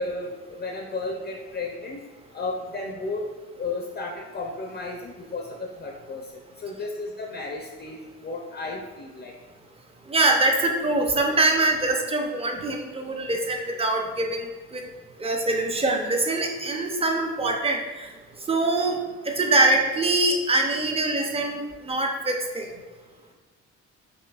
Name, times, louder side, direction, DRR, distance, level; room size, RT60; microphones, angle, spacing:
voice 1, 0.0-2.0 2.3-3.3 3.5-9.3, left 3 dB, 35° left, 0 dB, 0.5 m, -33 dB
voice 2, 10.1-14.4 14.7-14.8 15.2-18.1 18.5-19.0 19.2-22.6, right 2 dB, 20° right, 2 dB, 0.6 m, -23 dB
5.7 x 2.6 x 2.4 m, 1.3 s
cardioid pair, 90°, 30 cm